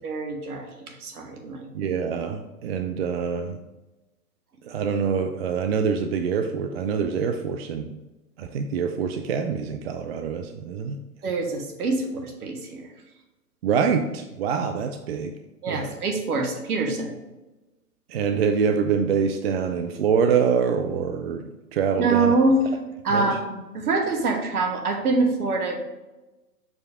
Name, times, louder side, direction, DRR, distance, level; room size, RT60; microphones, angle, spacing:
voice 1, 0.0-1.7 11.2-12.9 15.6-17.2 22.0-22.6 23.0-25.8, right 3 dB, 70° right, 3 dB, 1.5 m, -25 dB
voice 2, 1.7-3.6 4.7-8.0 8.4-11.0 13.6-15.3 15.7-15.9 18.1-21.4 21.7-22.3 23.1-23.3, right 6 dB, 45° right, 7 dB, 0.5 m, -25 dB
6.3 x 4.9 x 3.6 m, 1.1 s
figure-of-eight pair, 120°, 47 cm